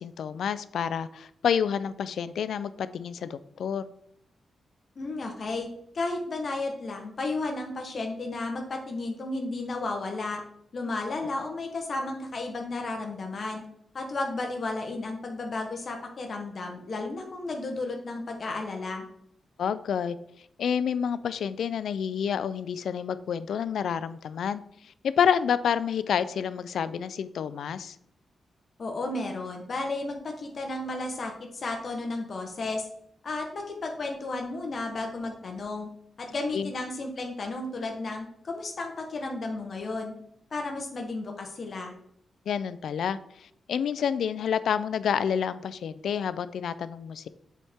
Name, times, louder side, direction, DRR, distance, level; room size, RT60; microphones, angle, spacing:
voice 1, 0.0-3.9 19.6-20.2 20.6-28.0 36.5-36.7 42.5-47.3, left 8 dB, 80° left, 15 dB, 0.4 m, -29 dB
voice 2, 5.0-5.7 5.9-10.4 10.7-13.6 13.9-19.0 28.8-32.9 33.2-35.9 36.2-40.1 40.5-41.9, left 2 dB, 50° left, 2 dB, 1.1 m, -33 dB
8.2 x 4.3 x 3.6 m, 0.74 s
cardioid pair, 105°, 0 cm